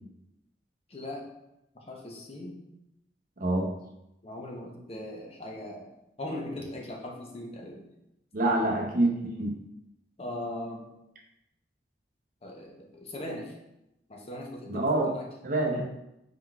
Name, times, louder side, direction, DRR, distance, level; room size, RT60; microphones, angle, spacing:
voice 1, 0.9-1.2 1.9-2.6 4.2-5.9 6.2-7.8 8.4-8.6 10.2-10.8 12.4-13.5 14.1-15.3 15.6-15.8, left 1 dB, 35° left, 0 dB, 0.6 m, -39 dB
voice 2, 3.4-3.7 8.3-9.1 9.4-9.6 14.7-15.1 15.4-15.9, right 2 dB, 50° right, 0 dB, 0.6 m, -26 dB
4.5 x 3.9 x 2.3 m, 0.87 s
head